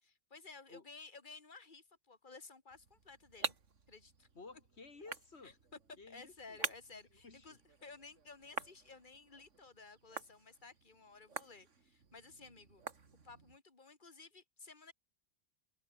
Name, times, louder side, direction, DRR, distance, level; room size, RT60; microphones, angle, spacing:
voice 1, 0.0-3.6 3.9-4.3 5.4-5.8 6.1-12.8 13.2-14.9, left 4 dB, 40° left, 2.5 m, -55 dB
sound 1, 2.7-13.6, right 5 dB, 75° right, 2.3 m, -48 dB
voice 2, 4.3-5.5 6.0-6.6 7.2-7.6, left 3 dB, 60° left, 2.7 m, -54 dB
omnidirectional pair, 1.3 m